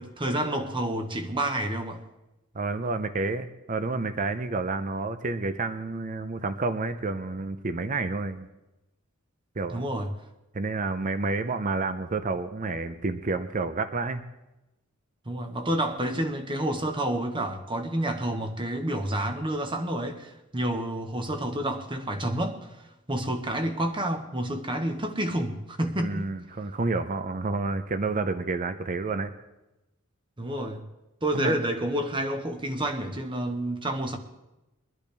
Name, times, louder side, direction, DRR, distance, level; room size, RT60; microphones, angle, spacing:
voice 1, 0.0-2.0 9.7-10.1 15.2-22.6 23.1-26.3 30.4-30.8 31.2-34.2, right 1 dB, 25° right, 6 dB, 1.2 m, -29 dB
voice 2, 2.5-8.5 9.6-9.8 10.5-14.2 26.0-29.3 31.3-31.5, right 3 dB, 40° right, 10 dB, 0.6 m, -29 dB
22.5 x 11.0 x 3.5 m, 0.97 s
head